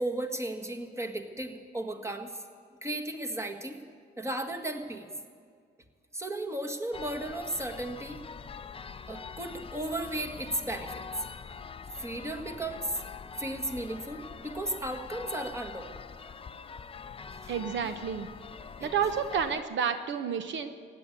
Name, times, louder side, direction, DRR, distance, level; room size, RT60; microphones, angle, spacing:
voice 1, 0.0-2.4 2.8-3.8 4.2-5.1 6.1-8.2 9.1-11.0 12.0-13.0 13.4-15.9 17.3-17.5 18.8-18.9, right 1 dB, 15° right, 4 dB, 1.7 m, -35 dB
sound 1, 6.9-19.6, left 6 dB, 30° left, 0.5 m, -44 dB
voice 2, 17.5-18.3 18.8-20.7, right 7 dB, 70° right, 9 dB, 0.9 m, -30 dB
16.5 x 9.8 x 8.5 m, 2.1 s
cardioid pair, 90°, 20 cm